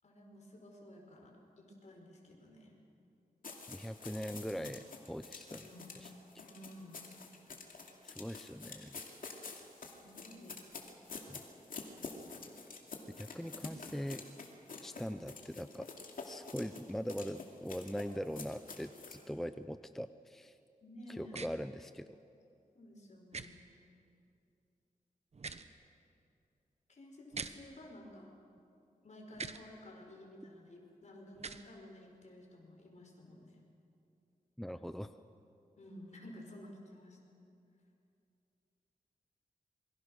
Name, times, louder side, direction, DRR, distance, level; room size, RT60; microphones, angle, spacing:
voice 1, 0.0-2.8 5.6-5.9 6.4-7.0 9.5-10.9 20.8-21.4 22.7-23.6 26.9-28.3 29.0-33.6 35.8-37.2, left 1 dB, 55° left, 1 dB, 4.9 m, -53 dB
sound 1, 3.4-19.2, left 4 dB, 75° left, 2.6 m, -48 dB
voice 2, 3.7-5.7 6.0-6.1 6.3-6.4 8.0-9.0 11.3-11.4 13.2-14.2 14.8-15.9 16.2-20.6 21.1-22.2 34.6-35.2, equal, ahead, 11 dB, 0.5 m, -41 dB
sound 2, 21.3-21.5 23.3-23.5 25.3-25.7 27.3-27.5 29.3-29.6 31.3-31.6, right 5 dB, 50° right, 1.0 m, -42 dB
27.5 x 23.0 x 6.4 m, 2.6 s
wide cardioid pair, 130°, 14 cm